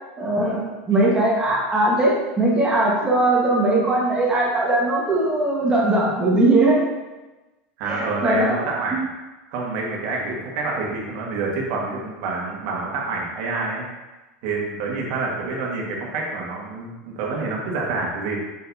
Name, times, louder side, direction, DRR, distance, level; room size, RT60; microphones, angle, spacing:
voice 1, 0.2-6.8 7.9-8.6 8.9-9.0, right 2 dB, 15° right, -4 dB, 1.4 m, -20 dB
voice 2, 7.8-9.0 9.5-13.8 14.4-18.4, right 3 dB, 55° right, -2 dB, 1.6 m, -27 dB
6.6 x 5.5 x 2.7 m, 1.1 s
supercardioid pair, 150°, 6 cm